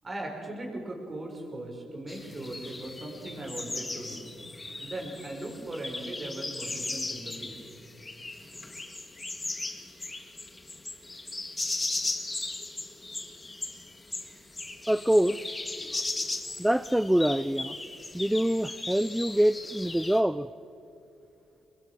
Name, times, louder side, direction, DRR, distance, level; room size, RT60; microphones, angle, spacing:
voice 1, 0.0-4.3 4.8-7.6, right 1 dB, 30° right, 1 dB, 6.4 m, -39 dB
sound 1, 2.1-20.2, left 2 dB, 20° left, 1.9 m, -37 dB
voice 2, 14.9-15.5 16.6-17.8 18.1-20.5, right 1 dB, 5° right, 14 dB, 0.5 m, -25 dB
25.0 x 21.5 x 6.7 m, 2.6 s
cardioid pair, 90°, 0 cm